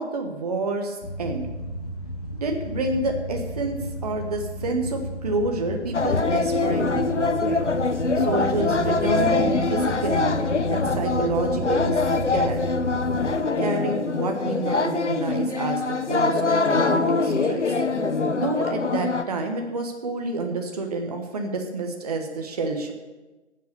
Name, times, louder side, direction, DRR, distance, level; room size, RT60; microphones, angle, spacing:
voice 1, 0.0-1.5 2.4-7.6 8.2-10.4 10.7-12.0 12.3-12.6 13.6-17.6 18.3-22.9, right 2 dB, 35° right, 3 dB, 1.4 m, -29 dB
sound 1, 1.0-13.3, equal, 35° left, 1.6 m, -33 dB
sound 2, 5.9-19.2, left 3 dB, 75° left, 1.0 m, -24 dB
12.0 x 8.1 x 6.7 m, 1.2 s
figure-of-eight pair, 150°, 35 cm